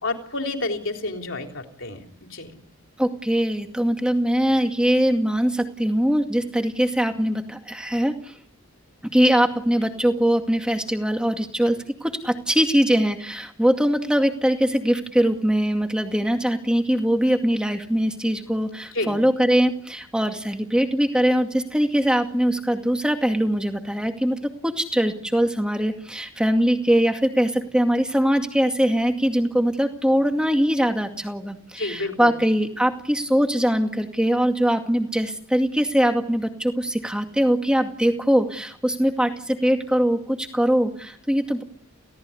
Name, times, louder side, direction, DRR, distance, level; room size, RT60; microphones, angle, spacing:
voice 1, 0.0-2.0 2.3-2.5 18.9-19.2 31.8-32.4, left 2 dB, 60° left, 3 dB, 3.6 m, -29 dB
voice 2, 3.0-8.4 9.0-41.6, equal, 5° right, 4 dB, 2.2 m, -22 dB
30.0 x 17.5 x 9.8 m, 0.68 s
head